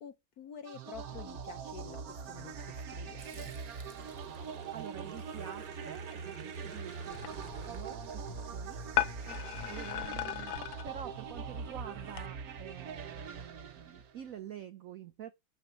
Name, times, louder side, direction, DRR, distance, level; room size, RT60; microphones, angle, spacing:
voice 1, 0.0-3.5, left 8 dB, 65° left, 0.9 m, -49 dB
sound 1, 0.7-14.3, right 6 dB, 55° right, 1.2 m, -42 dB
Growling, 3.2-9.9, right 5 dB, 35° right, 0.7 m, -52 dB
voice 2, 4.4-8.8 9.7-10.6 10.8-15.3, right 9 dB, 75° right, 0.7 m, -48 dB
sound 2, 7.1-12.3, left 13 dB, 80° left, 1.5 m, -38 dB
7.0 x 6.2 x 5.6 m
omnidirectional pair, 2.3 m